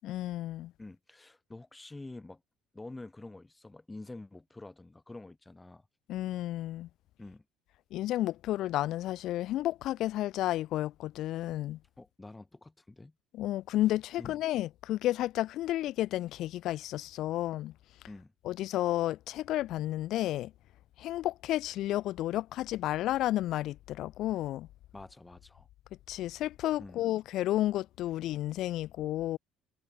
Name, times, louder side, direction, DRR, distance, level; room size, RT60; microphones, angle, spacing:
voice 1, 0.0-0.7 6.1-6.9 7.9-11.8 13.3-17.7 18.4-20.5 21.0-24.7 26.1-29.4, left 14 dB, 65° left, 0.4 m, -32 dB
voice 2, 0.8-2.4 2.7-5.9 7.2-7.4 12.0-13.1 14.2-14.4 18.1-18.3 24.9-25.7 26.8-27.0, left 2 dB, 10° left, 2.9 m, -47 dB
cardioid pair, 125°, 0 cm